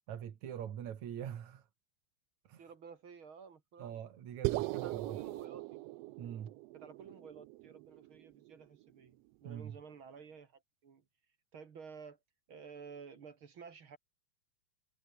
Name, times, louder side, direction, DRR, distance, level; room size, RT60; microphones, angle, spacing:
voice 1, 0.1-1.6 2.5-2.7 3.8-5.2 6.2-6.5 9.4-9.8, right 9 dB, 70° right, 3.2 m, -43 dB
voice 2, 2.6-4.0 4.5-5.8 6.7-11.0 11.5-12.2 12.5-14.0, right 6 dB, 45° right, 2.5 m, -52 dB
sound 1, 4.4-8.8, right 19 dB, 90° right, 1.4 m, -40 dB
omnidirectional pair, 3.4 m